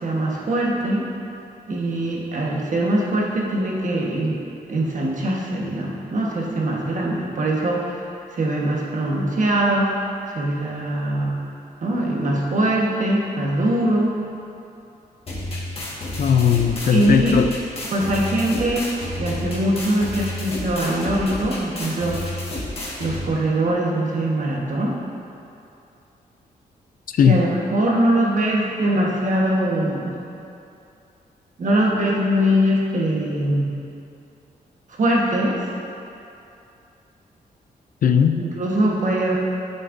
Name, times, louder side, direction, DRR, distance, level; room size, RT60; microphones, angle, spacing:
voice 1, 0.0-1.1 1.7-4.4 4.7-8.0 8.3-9.9 10.3-11.4 11.8-14.2 16.9-17.4 17.9-18.9 19.2-22.4 23.0-25.0 27.2-30.2 31.6-33.7 34.9-35.7 38.4-39.4, right 1 dB, 55° right, -3 dB, 1.3 m, -22 dB
sound 1, 15.3-23.3, left 1 dB, 40° left, 1.7 m, -30 dB
voice 2, 16.2-17.5 27.1-27.4 38.0-38.4, left 8 dB, 60° left, 7 dB, 0.4 m, -17 dB
8.6 x 6.6 x 2.6 m, 2.7 s
cardioid pair, 95°, 16 cm